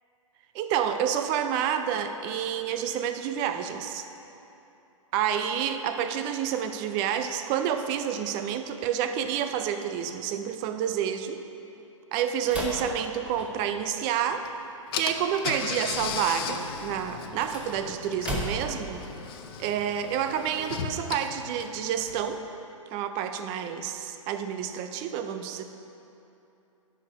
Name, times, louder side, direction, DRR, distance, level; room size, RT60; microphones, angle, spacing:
voice 1, 0.5-4.1 5.1-11.4 12.1-14.5 15.0-19.1 19.6-22.4 22.9-25.6, right 9 dB, 25° right, 8 dB, 0.5 m, -29 dB
sound 1, 12.5-13.9 17.2-18.8, equal, 5° right, 1.2 m, -35 dB
Car / Engine, 14.4-14.5 14.9-22.4, left 7 dB, 45° left, 0.7 m, -36 dB
11.5 x 4.9 x 5.3 m, 2.9 s
hypercardioid pair, 125°, 17 cm